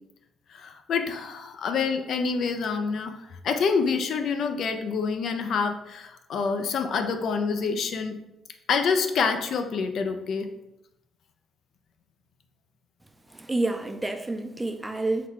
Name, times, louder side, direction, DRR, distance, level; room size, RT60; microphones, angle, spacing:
voice 1, 0.5-8.2 8.7-10.5, left 5 dB, 65° left, 0.4 m, -27 dB
voice 2, 13.3-15.3, right 2 dB, 15° right, 0.4 m, -29 dB
3.8 x 2.3 x 4.5 m
cardioid pair, 90°, 0 cm